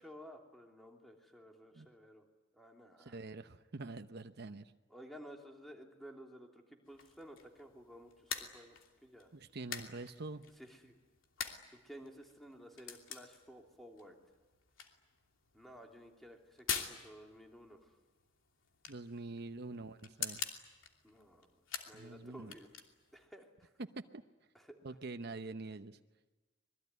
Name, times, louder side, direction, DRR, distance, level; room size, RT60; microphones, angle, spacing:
voice 1, 0.0-2.2 2.5-3.2 4.9-9.3 10.6-10.9 11.7-14.2 15.5-18.0 21.0-22.7 23.1-23.7 24.5-24.8, equal, ahead, 1 dB, 3.1 m, -54 dB
voice 2, 3.0-4.7 9.3-10.4 18.9-20.4 21.9-22.5 23.8-24.2 24.8-26.0, right 3 dB, 55° right, 8 dB, 0.9 m, -45 dB
sound 1, 6.9-23.3, left 7 dB, 85° left, 2.9 m, -47 dB
26.0 x 21.5 x 9.6 m, 1.2 s
head